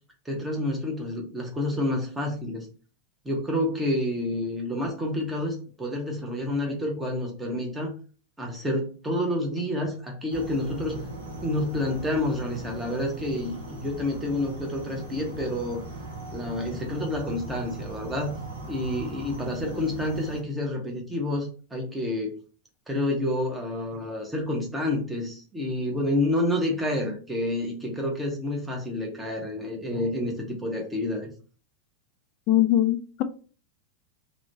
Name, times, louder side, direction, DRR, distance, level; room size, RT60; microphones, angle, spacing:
voice 1, 0.3-2.7 3.2-8.0 8.4-11.0 11.4-15.8 16.3-18.3 18.7-22.3 22.9-31.3, left 1 dB, 10° right, 0.8 m, -29 dB
sound 1, 10.3-20.4, right 2 dB, 60° right, 0.7 m, -39 dB
voice 2, 32.5-33.2, left 13 dB, 40° left, 0.3 m, -21 dB
3.0 x 2.1 x 2.8 m
figure-of-eight pair, 90°, 0 cm